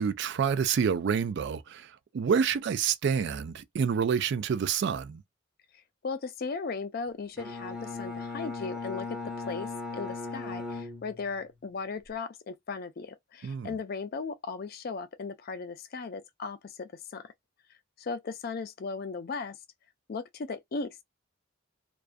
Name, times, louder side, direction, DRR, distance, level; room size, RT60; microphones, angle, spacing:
voice 1, 0.0-5.2 13.4-13.7, right 7 dB, 55° right, 0.3 m, -28 dB
voice 2, 6.0-17.3 18.0-19.6 20.1-21.0, left 4 dB, 45° left, 0.4 m, -37 dB
Bowed string instrument, 7.4-11.6, left 4 dB, 5° right, 0.6 m, -38 dB
2.3 x 2.3 x 2.4 m
head